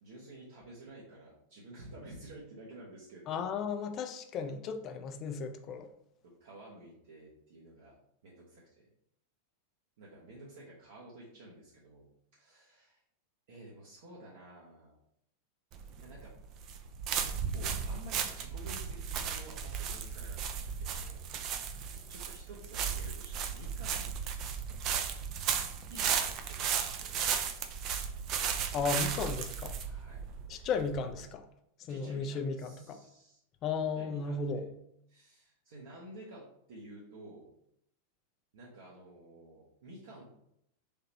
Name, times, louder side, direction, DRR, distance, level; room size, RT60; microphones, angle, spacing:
voice 1, 0.0-3.5 6.4-8.0 8.2-8.9 10.0-12.1 12.3-13.0 13.5-15.0 16.0-16.3 17.5-21.8 22.1-24.3 25.9-27.2 29.8-30.7 31.9-33.4 33.9-34.7 35.1-37.5 38.5-40.4, right 1 dB, 55° right, 0.8 m, -52 dB
voice 2, 3.3-5.9 28.7-29.7 30.5-31.4 31.9-33.0 33.6-34.6, left 5 dB, 35° left, 0.4 m, -35 dB
sound 1, 15.7-31.2, right 7 dB, 35° right, 0.4 m, -35 dB
3.4 x 2.8 x 2.8 m
figure-of-eight pair, 90°, 0 cm